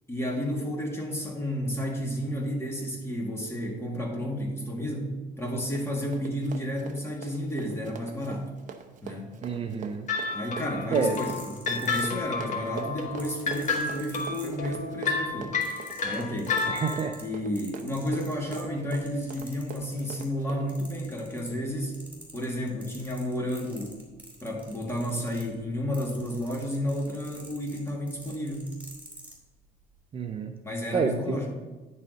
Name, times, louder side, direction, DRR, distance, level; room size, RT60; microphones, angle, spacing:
voice 1, 0.1-5.1 5.4-8.5 9.0-9.4 10.3-15.5 16.0-16.6 17.2-22.0 22.3-23.9 24.4-28.7 30.6-31.5, equal, 15° left, -1 dB, 2.1 m, -31 dB
Run, 5.4-20.7, right 6 dB, 50° right, 0.9 m, -43 dB
voice 2, 9.4-10.1 10.9-11.2 16.7-17.1 30.1-30.5 30.9-31.5, right 5 dB, 35° right, 6 dB, 0.5 m, -28 dB
sound 1, 10.1-17.2, left 4 dB, 45° left, 1.5 m, -31 dB
sound 2, 10.9-12.5 13.2-14.9 15.3-20.3 20.7-21.7 21.9-29.4 30.1-30.3, right 1 dB, 10° right, 2.9 m, -48 dB
10.0 x 4.2 x 6.4 m, 1.2 s
cardioid pair, 110°, 17 cm